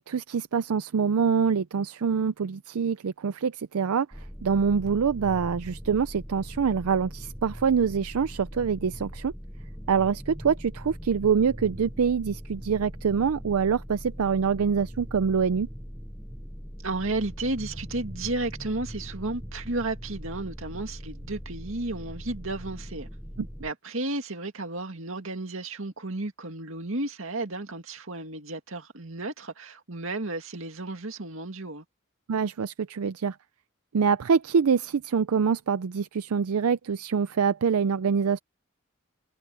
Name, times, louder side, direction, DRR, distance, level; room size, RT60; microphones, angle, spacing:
voice 1, 0.0-4.1 4.4-9.3 9.9-15.7 32.3-33.4 33.9-38.4, right 6 dB, 80° right, 0.5 m, -25 dB
sound 1, 4.1-23.7, equal, ahead, 0.6 m, -41 dB
voice 2, 16.8-23.1 23.6-31.8, right 2 dB, 65° right, 2.3 m, -33 dB
head